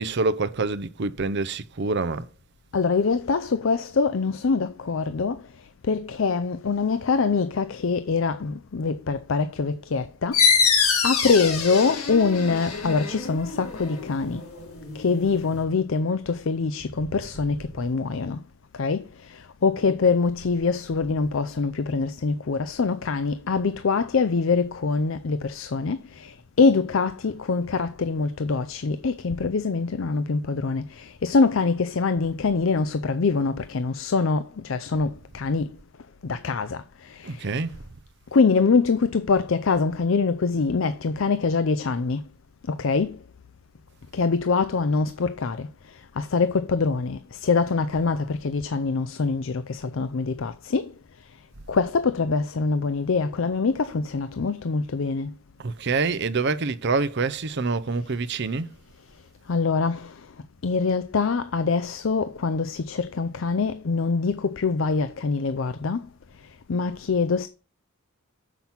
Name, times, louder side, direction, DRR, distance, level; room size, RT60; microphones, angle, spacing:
voice 1, 0.0-2.3 37.2-37.8 55.6-58.7, right 3 dB, 50° right, 0.6 m, -26 dB
voice 2, 2.7-5.4 5.9-10.4 10.7-10.8 11.0-14.4 14.9-18.4 18.7-35.8 36.2-37.6 38.3-42.2 42.7-43.2 44.1-45.7 46.2-50.9 51.7-55.3 59.5-60.2 60.6-66.0 66.7-67.5, left 4 dB, 60° left, 0.5 m, -24 dB
sound 1, 10.3-15.6, left 5 dB, 80° left, 3.0 m, -25 dB
7.1 x 5.9 x 5.8 m
head